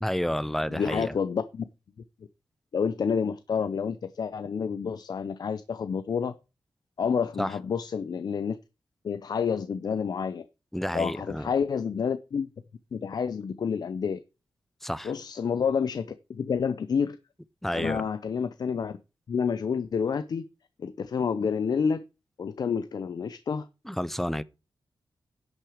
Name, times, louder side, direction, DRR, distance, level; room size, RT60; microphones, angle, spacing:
voice 1, 0.0-1.1 7.4-7.5 10.7-11.5 14.8-15.1 17.6-18.0 23.9-24.4, equal, 5° left, 0.4 m, -30 dB
voice 2, 0.7-1.6 2.7-6.3 7.0-8.6 9.0-10.5 10.9-12.5 12.9-14.2 15.0-17.2 17.7-18.9 19.3-20.4 20.8-22.0 22.4-23.7, left 6 dB, 55° left, 0.5 m, -29 dB
10.5 x 6.2 x 4.9 m
wide cardioid pair, 170°, 8 cm